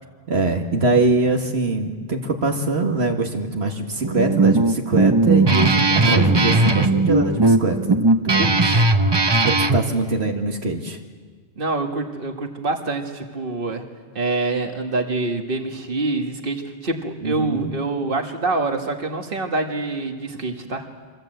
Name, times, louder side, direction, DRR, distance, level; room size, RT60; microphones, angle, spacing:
voice 1, 0.3-8.0 8.2-8.8 9.4-11.0 17.2-17.7, right 2 dB, 80° right, 2 dB, 2.0 m, -23 dB
Guitar, 4.0-9.8, right 2 dB, 25° right, 0.9 m, -17 dB
voice 2, 11.6-13.9 14.2-20.9, right 3 dB, 55° right, 4 dB, 2.0 m, -26 dB
26.0 x 25.0 x 7.9 m, 1.5 s
omnidirectional pair, 1.1 m